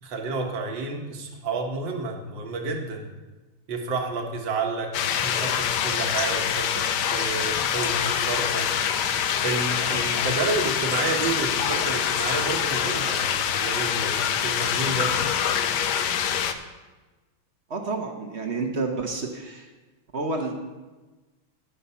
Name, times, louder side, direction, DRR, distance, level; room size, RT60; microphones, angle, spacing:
voice 1, 0.0-3.1 3.7-4.9 5.2-8.7 9.4-15.1, right 3 dB, 60° right, 2 dB, 2.0 m, -30 dB
sound 1, 4.9-16.5, left 8 dB, 70° left, 1.0 m, -25 dB
voice 2, 17.7-19.7 20.1-20.5, right 3 dB, 40° right, 3 dB, 1.0 m, -29 dB
15.5 x 5.7 x 5.6 m, 1.2 s
omnidirectional pair, 2.4 m